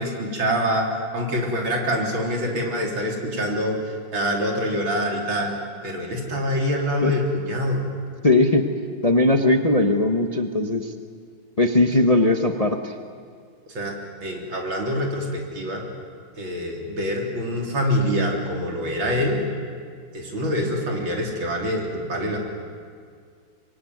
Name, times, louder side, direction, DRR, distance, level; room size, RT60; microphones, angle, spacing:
voice 1, 0.0-3.8 4.1-5.5 5.8-7.8 13.7-15.9 16.4-19.4 20.1-22.4, equal, 75° right, 1 dB, 4.4 m, -25 dB
voice 2, 8.2-8.7 9.0-10.9 11.6-12.9, left 2 dB, 25° left, 5 dB, 1.0 m, -19 dB
25.0 x 22.5 x 9.5 m, 2.1 s
omnidirectional pair, 2.2 m